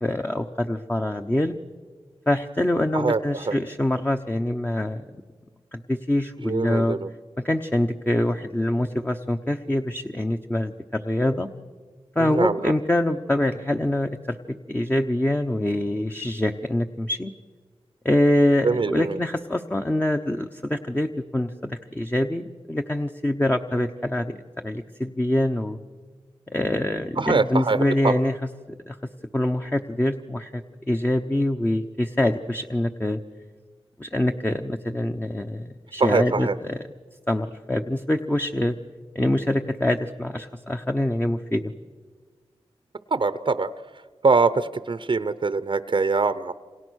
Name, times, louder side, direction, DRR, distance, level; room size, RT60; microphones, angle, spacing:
voice 1, 0.0-1.5 2.3-5.0 5.7-7.0 7.4-11.5 12.1-17.3 18.0-25.8 26.5-28.4 28.9-29.0 29.3-33.2 34.0-36.8 37.3-38.8 39.1-41.7, left 1 dB, 15° left, 5 dB, 0.9 m, -25 dB
voice 2, 2.9-3.6 6.4-7.1 12.2-12.7 18.6-19.2 27.2-28.2 36.0-36.6 43.1-43.7 44.2-46.5, right 4 dB, 50° right, 13 dB, 0.7 m, -23 dB
28.5 x 27.0 x 6.4 m, 1.5 s
wide cardioid pair, 80°, 11 cm